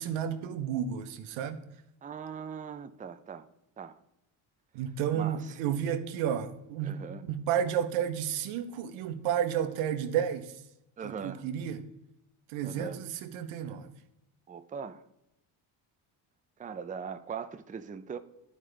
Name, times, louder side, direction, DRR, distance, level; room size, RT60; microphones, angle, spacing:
voice 1, 0.0-1.7 4.7-10.6 11.0-11.9 12.5-13.9, right 9 dB, 85° right, 0.8 m, -32 dB
voice 2, 2.0-3.5 3.8-4.0 5.1-5.4 6.8-7.2 11.0-11.5 12.6-13.0 14.5-15.0 16.6-18.2, right 6 dB, 15° right, 0.5 m, -40 dB
11.0 x 5.1 x 3.3 m
supercardioid pair, 70°, 48 cm